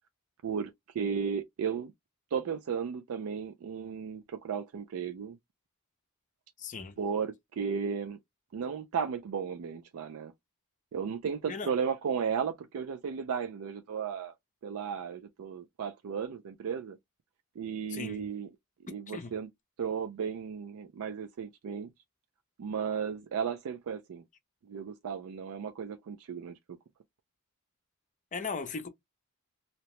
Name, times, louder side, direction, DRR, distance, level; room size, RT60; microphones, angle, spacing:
voice 1, 0.4-1.9 2.3-5.4 7.0-8.2 8.5-10.3 10.9-14.3 14.6-17.0 17.6-18.5 18.8-19.5 19.8-21.9 22.6-24.2 24.7-26.6, right 6 dB, 65° right, 0.3 m, -34 dB
voice 2, 6.6-7.0 11.5-11.7 17.9-18.2 19.1-19.3 28.3-28.9, left 4 dB, 35° left, 0.5 m, -37 dB
2.8 x 2.1 x 2.9 m
head